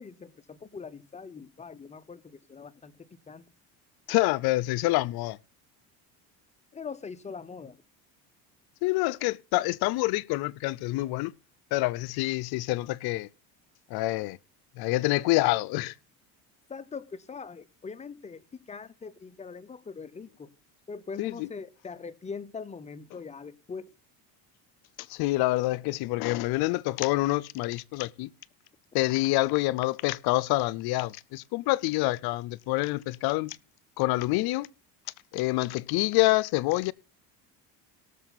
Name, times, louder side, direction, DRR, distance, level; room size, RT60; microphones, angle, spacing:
voice 1, 0.0-3.4 6.7-7.8 16.7-20.5 20.9-23.9, left 5 dB, 15° left, 0.7 m, -42 dB
voice 2, 4.1-5.4 8.8-11.3 11.7-13.3 13.9-14.4 14.8-15.9 21.2-21.5 25.1-28.3 28.9-33.6 34.0-34.7 35.3-36.9, left 19 dB, 70° left, 0.6 m, -27 dB
18.0 x 6.8 x 4.0 m
cardioid pair, 115°, 39 cm